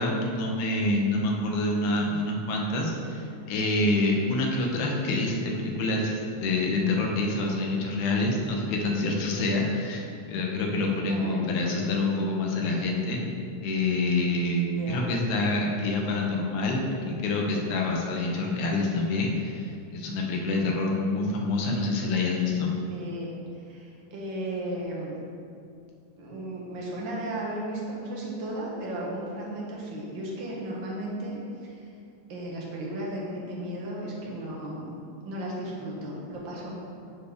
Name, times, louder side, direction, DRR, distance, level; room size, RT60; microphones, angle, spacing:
voice 1, 0.0-13.3 13.6-14.6 14.9-22.7, left 2 dB, 70° left, 0 dB, 1.3 m, -27 dB
voice 2, 11.1-11.4 14.1-14.3 14.8-15.0 21.1-21.5 22.9-25.2 26.2-31.9 32.3-35.0 35.2-36.7, right 1 dB, 55° right, -4 dB, 1.4 m, -35 dB
11.5 x 4.2 x 3.5 m, 2.5 s
omnidirectional pair, 3.5 m